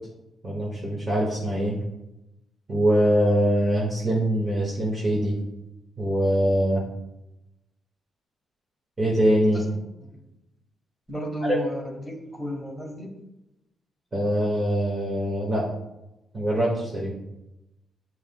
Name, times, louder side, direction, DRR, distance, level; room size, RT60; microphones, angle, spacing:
voice 1, 0.4-1.8 2.7-5.3 6.0-6.8 9.0-9.6 11.4-11.6 14.1-15.7 16.3-17.1, equal, 25° right, -6 dB, 1.8 m, -23 dB
voice 2, 9.5-10.2 11.1-13.2, equal, 5° right, 1 dB, 1.5 m, -34 dB
9.7 x 4.7 x 2.3 m, 0.92 s
cardioid pair, 110°, 0 cm